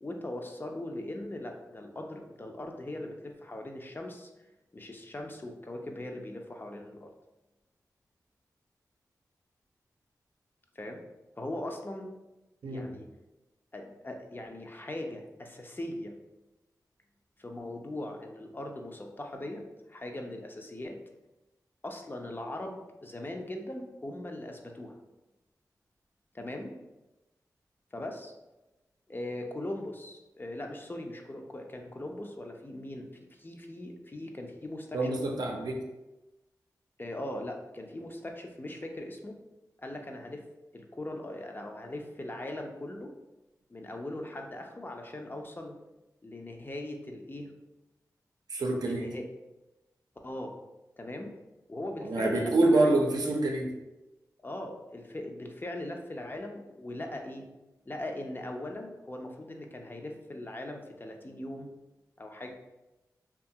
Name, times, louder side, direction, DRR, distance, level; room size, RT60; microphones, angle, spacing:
voice 1, 0.0-4.3 4.7-7.1 10.8-11.0 11.4-12.1 12.6-13.1 13.7-16.1 17.4-19.6 19.9-21.0 21.8-25.0 26.3-26.7 27.9-28.3 29.1-35.1 37.0-39.4 39.8-40.4 40.7-43.1 43.7-45.7 46.2-47.5 48.8-49.2 50.2-50.6 51.0-51.3 51.7-53.0 54.4-57.4 57.9-61.7 62.2-62.5, left 1 dB, 30° left, 3 dB, 0.4 m, -40 dB
voice 2, 34.9-35.8 48.5-49.1 52.0-53.7, right 2 dB, 75° right, 1 dB, 0.5 m, -26 dB
2.7 x 2.3 x 2.7 m, 1.0 s
cardioid pair, 45°, 7 cm